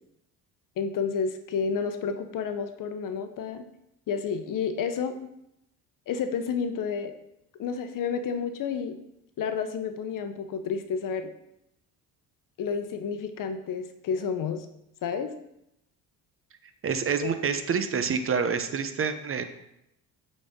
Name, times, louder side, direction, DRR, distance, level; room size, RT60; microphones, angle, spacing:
voice 1, 0.8-3.6 4.1-5.1 6.1-7.1 7.6-9.0 9.4-11.3 12.6-14.7 15.0-15.3 17.2-17.3, left 6 dB, 60° left, 8 dB, 0.8 m, -30 dB
voice 2, 16.8-19.4, right 6 dB, 35° right, 9 dB, 0.7 m, -27 dB
8.5 x 4.2 x 3.6 m, 0.83 s
supercardioid pair, 85°, 37 cm